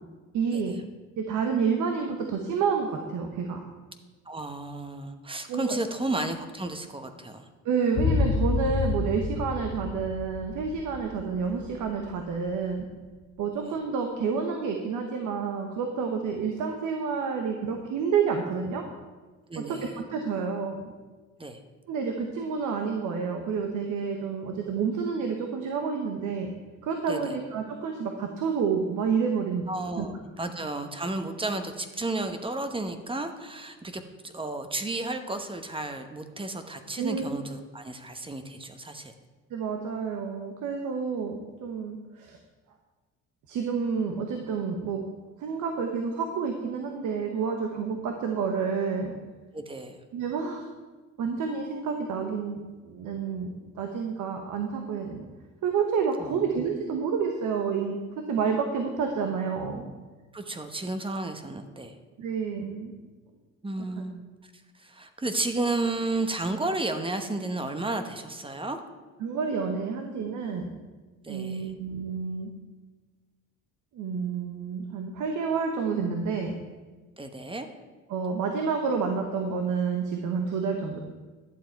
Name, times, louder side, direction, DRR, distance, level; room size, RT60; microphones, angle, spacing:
voice 1, 0.3-0.8 1.2-3.7 5.5-5.8 7.6-12.8 13.4-18.8 19.5-19.8 20.1-20.9 21.9-26.5 26.8-30.0 37.0-37.3 39.5-42.4 43.5-45.0 45.4-49.1 50.1-50.6 51.2-55.3 55.6-58.0 58.3-59.8 62.2-62.9 69.2-70.8 71.3-72.5 73.9-76.6 78.1-81.0, right 5 dB, 80° right, 3 dB, 1.1 m, -29 dB
voice 2, 4.3-7.4 19.5-19.9 21.4-21.6 27.1-27.3 29.7-39.1 49.5-50.0 56.2-56.4 60.3-61.9 63.6-64.2 64.8-68.8 71.2-71.7 77.2-77.7, right 2 dB, 15° right, 8 dB, 1.0 m, -32 dB
sound 1, 8.0-12.2 12.4-12.5, left 4 dB, 60° left, 1.1 m, -29 dB
11.5 x 7.4 x 4.6 m, 1.3 s
cardioid pair, 90°, 30 cm